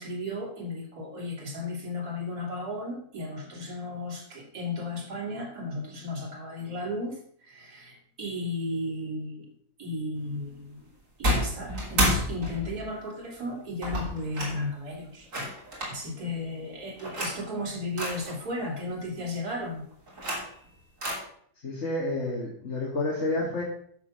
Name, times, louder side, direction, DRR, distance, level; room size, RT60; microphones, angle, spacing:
voice 1, 0.0-9.5 9.8-10.9 11.2-15.5 15.9-19.9, left 1 dB, 75° right, -3 dB, 3.4 m, -34 dB
sound 1, 11.2-12.9 13.8-14.6 15.3-16.0 17.0-17.4 18.0-18.4 19.9-20.7 21.0-21.2, equal, 55° right, 3.5 m, -29 dB
voice 2, 21.6-23.6, left 2 dB, 45° left, -2 dB, 2.2 m, -29 dB
10.5 x 6.6 x 6.4 m, 0.62 s
omnidirectional pair, 1.7 m